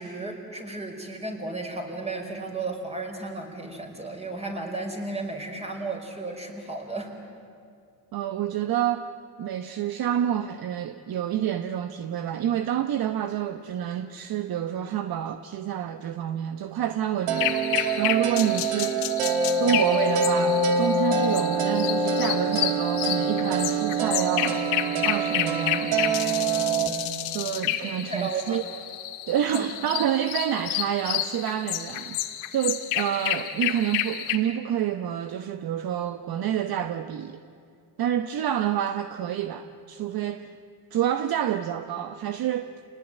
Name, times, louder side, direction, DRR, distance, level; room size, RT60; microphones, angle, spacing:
voice 1, 0.0-7.1 27.8-28.6 29.5-29.7, right 3 dB, 15° right, 5.2 m, -34 dB
voice 2, 8.1-9.1 9.4-17.6 18.0-19.1 19.4-24.6 25.0-25.9 27.3-28.6 29.3-32.2 32.5-37.4 38.0-40.6 40.9-42.7, right 10 dB, 50° right, 1.0 m, -28 dB
sound 1, 17.3-34.4, left 12 dB, 75° left, 2.2 m, -30 dB
sound 2, 17.3-26.9, right 4 dB, 85° right, 2.6 m, -25 dB
29.0 x 19.5 x 9.2 m
supercardioid pair, 105°, 48 cm